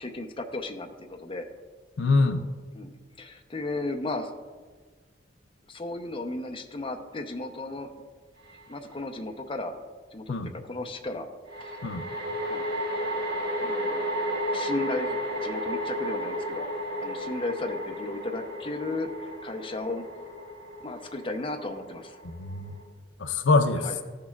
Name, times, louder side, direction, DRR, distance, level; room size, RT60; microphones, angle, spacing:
voice 1, 0.0-1.5 2.7-2.9 3.2-4.3 5.7-7.9 8.7-9.7 10.1-10.3 10.7-11.3 11.6-11.8 12.5-12.6 13.6-14.0 14.5-16.7 17.0-20.0 20.8-22.2 23.8-24.0, left 2 dB, 30° left, 4 dB, 0.6 m, -34 dB
voice 2, 2.0-2.4 10.3-10.5 11.8-12.0 22.2-22.7 23.2-23.9, left 3 dB, 75° left, 8 dB, 0.5 m, -24 dB
sound 1, 8.5-8.6 11.5-22.8, equal, 55° right, 1.7 m, -33 dB
14.5 x 6.6 x 2.4 m, 1.4 s
head